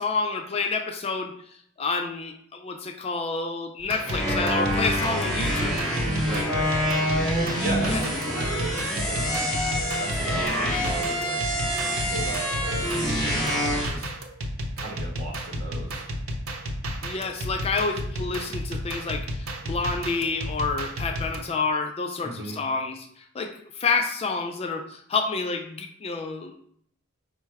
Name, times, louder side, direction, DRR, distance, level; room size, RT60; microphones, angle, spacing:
voice 1, 0.0-1.3 1.8-5.8 7.9-8.0 17.0-26.6, left 4 dB, 30° left, 5 dB, 0.3 m, -29 dB
sound 1, 3.8-21.4, equal, 85° right, 0.7 m, -32 dB
sound 2, 4.0-13.9, equal, ahead, 1.4 m, -26 dB
voice 2, 6.2-6.7 7.6-9.5 10.0-11.4 12.0-14.1 14.8-16.0 22.2-22.6, right 1 dB, 45° right, -2 dB, 1.4 m, -36 dB
5.5 x 2.1 x 4.6 m, 0.65 s
head